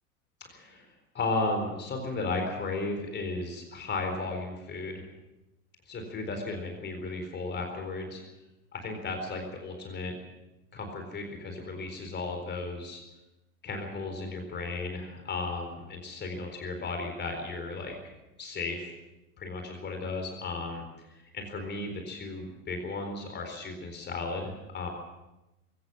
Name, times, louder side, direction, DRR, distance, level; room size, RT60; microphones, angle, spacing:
voice 1, 0.4-5.0 5.9-8.2 8.7-10.2 10.7-13.0 13.6-18.0 18.4-18.9 19.4-24.9, left 3 dB, 20° left, 4 dB, 4.2 m, -35 dB
22.0 x 18.0 x 7.2 m, 0.98 s
figure-of-eight pair, 90°, 46 cm